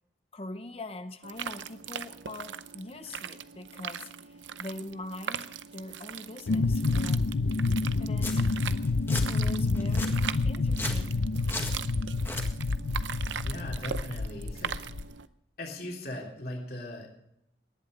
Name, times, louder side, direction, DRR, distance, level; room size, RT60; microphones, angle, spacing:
voice 1, 0.3-7.3 8.0-8.5 9.2-11.3, left 2 dB, 30° left, 9 dB, 0.8 m, -43 dB
sound 1, 1.2-15.3, right 8 dB, 85° right, 0.7 m, -40 dB
sound 2, 6.5-15.0, left 3 dB, 85° left, 0.6 m, -28 dB
Domestic sounds home sounds, 7.8-7.9 8.2-8.3 8.8-9.2 9.7-10.1 10.7-11.0 11.5-11.7 12.1-12.4, left 3 dB, 15° left, 1.7 m, -35 dB
voice 2, 13.4-14.9 15.6-17.1, left 1 dB, 55° left, -1 dB, 3.3 m, -39 dB
19.0 x 11.0 x 5.2 m, 0.78 s
head